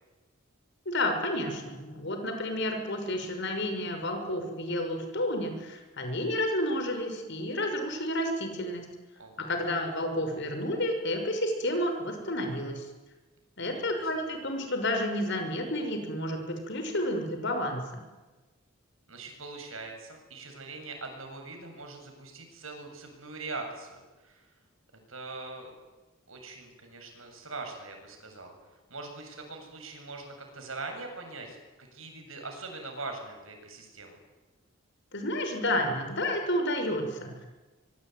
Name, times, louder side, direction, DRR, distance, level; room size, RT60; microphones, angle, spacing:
voice 1, 0.9-8.8 9.4-12.8 13.6-17.8 35.1-37.5, left 1 dB, 60° left, 5 dB, 6.3 m, -30 dB
voice 2, 9.2-9.6 14.0-14.1 19.1-24.4 25.1-25.7 26.3-28.5 28.9-34.2, right 3 dB, 90° right, 4 dB, 7.8 m, -42 dB
25.5 x 24.0 x 9.5 m, 1.2 s
head